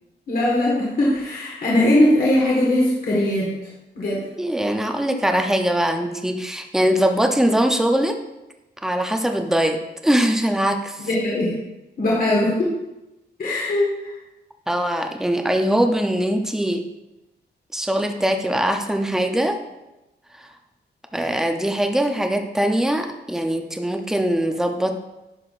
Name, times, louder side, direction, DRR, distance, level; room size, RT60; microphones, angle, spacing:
voice 1, 0.3-3.5 3.9-4.2 11.1-11.5 12.0-12.8 13.4-14.2, left 1 dB, 55° left, -5 dB, 1.6 m, -20 dB
voice 2, 4.4-8.2 8.8-11.1 14.7-16.8 17.7-19.6 20.4-20.5 21.1-24.9, right 1 dB, 5° right, 5 dB, 0.6 m, -22 dB
11.0 x 6.0 x 2.5 m, 0.98 s
wide cardioid pair, 145°, 18 cm